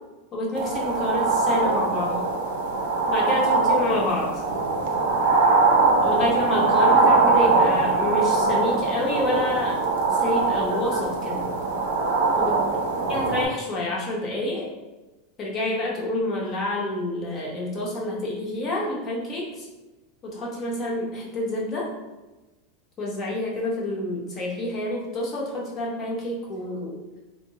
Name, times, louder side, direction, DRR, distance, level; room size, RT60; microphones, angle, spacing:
voice 1, 0.3-2.2 3.0-4.3 6.0-9.8 10.1-11.5 12.4-12.6 13.1-14.7 15.4-19.7 20.2-21.9 23.0-27.0, left 1 dB, 25° left, -3 dB, 0.7 m, -28 dB
sound 1, 0.5-13.5, right 3 dB, 90° right, 0.6 m, -22 dB
2.9 x 2.0 x 3.6 m, 1.1 s
supercardioid pair, 165°, 0 cm